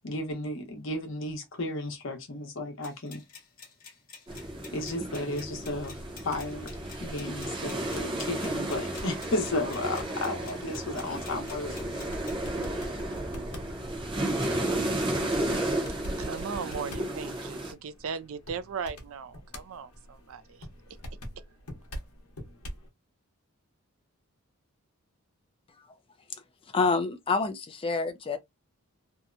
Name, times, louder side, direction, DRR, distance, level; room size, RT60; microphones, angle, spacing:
voice 1, 0.0-3.2 4.7-6.0 6.2-12.1, left 2 dB, 55° left, 0.9 m, -34 dB
sound 1, 2.8-12.4, left 5 dB, 40° left, 1.2 m, -51 dB
sound 2, 4.3-17.7, right 1 dB, 20° right, 0.6 m, -33 dB
sound 3, 7.8-22.9, equal, 80° left, 0.9 m, -46 dB
voice 2, 16.2-20.7 21.4-21.5, right 6 dB, 65° right, 0.4 m, -38 dB
voice 3, 26.7-28.4, left 4 dB, 25° left, 0.4 m, -27 dB
2.7 x 2.1 x 2.4 m
head